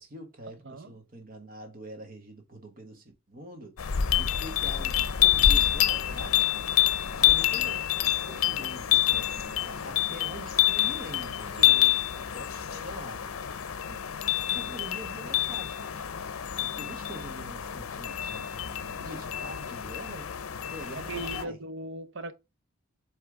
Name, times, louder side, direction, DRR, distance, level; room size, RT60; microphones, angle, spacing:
voice 1, 0.0-11.8 12.1-13.4 13.9-14.0 14.5-16.1 16.6-20.3 20.6-21.6, right 1 dB, 40° right, 1.3 m, -45 dB
sound 1, 3.8-21.4, left 12 dB, 85° left, 0.6 m, -27 dB
voice 2, 11.5-12.0 20.9-22.3, right 2 dB, 60° right, 0.7 m, -39 dB
8.0 x 3.3 x 3.6 m
head